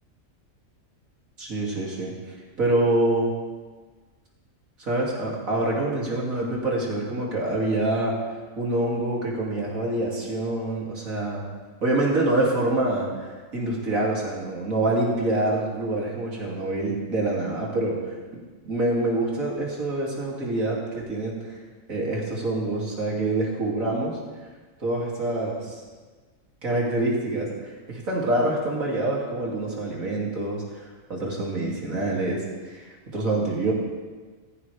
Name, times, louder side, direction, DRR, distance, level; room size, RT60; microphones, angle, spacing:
voice 1, 1.4-2.1 2.6-3.3 4.8-8.2 8.6-11.4 11.8-18.0 18.6-21.6 21.9-24.2 24.8-25.8 26.6-33.7, right 2 dB, 80° right, -4 dB, 3.3 m, -26 dB
16.0 x 15.0 x 3.5 m, 1.4 s
omnidirectional pair, 1.4 m